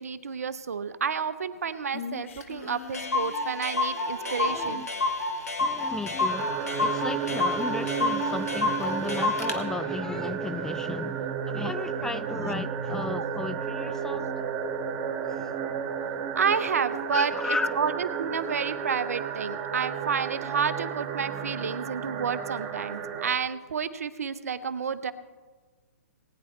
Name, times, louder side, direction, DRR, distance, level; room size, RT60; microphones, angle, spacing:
voice 1, 0.0-4.9 6.0-6.1 11.4-11.5 12.3-12.6 13.0-13.2 14.1-14.4 16.4-25.1, right 6 dB, 75° right, 0.8 m, -30 dB
Female singing, 1.9-5.4, left 8 dB, 55° left, 1.2 m, -43 dB
Clock, 2.4-2.5 2.7-2.8 2.9-9.6, left 3 dB, 85° left, 1.8 m, -29 dB
voice 2, 4.4-4.9 5.6-14.3 15.2-15.5 17.1-17.8, left 3 dB, 5° left, 0.3 m, -34 dB
sound 1, 6.3-23.4, right 7 dB, 25° right, 1.2 m, -33 dB
19.5 x 9.8 x 3.2 m
hypercardioid pair, 135°, 8 cm